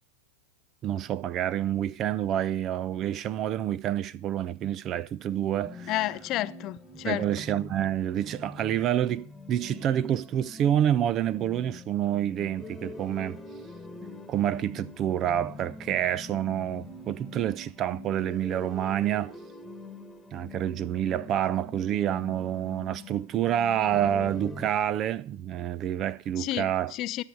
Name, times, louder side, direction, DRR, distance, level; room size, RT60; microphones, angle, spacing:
voice 1, 0.8-5.9 7.0-13.4 14.3-19.3 20.3-26.9, right 10 dB, 35° right, 0.5 m, -28 dB
sound 1, 5.6-24.7, left 2 dB, 10° left, 1.6 m, -44 dB
voice 2, 5.9-7.3 26.4-27.2, left 15 dB, 40° left, 0.5 m, -31 dB
10.5 x 6.5 x 6.7 m
hypercardioid pair, 100°, 0 cm